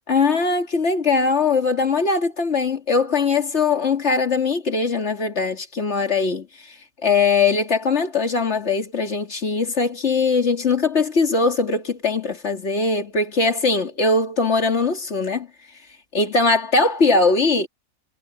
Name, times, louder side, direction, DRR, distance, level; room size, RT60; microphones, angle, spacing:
voice 1, 0.1-6.5 7.0-15.5 16.1-17.7, left 4 dB, 55° left, 2.5 m, -20 dB
omnidirectional pair, 1.4 m